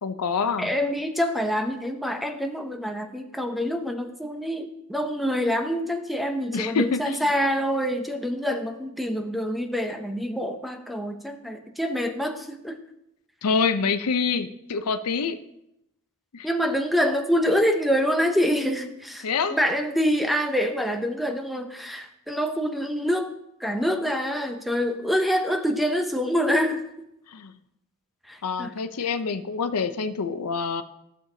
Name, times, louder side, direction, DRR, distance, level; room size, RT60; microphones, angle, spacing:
voice 1, 0.0-0.7 6.5-7.3 13.4-15.4 16.3-16.5 19.2-19.6 27.3-27.5 28.4-30.8, left 5 dB, 90° left, 10 dB, 0.6 m, -26 dB
voice 2, 0.6-12.8 16.4-23.3 23.6-26.9 28.2-28.7, equal, ahead, 5 dB, 0.6 m, -26 dB
14.5 x 6.5 x 2.8 m, 0.83 s
head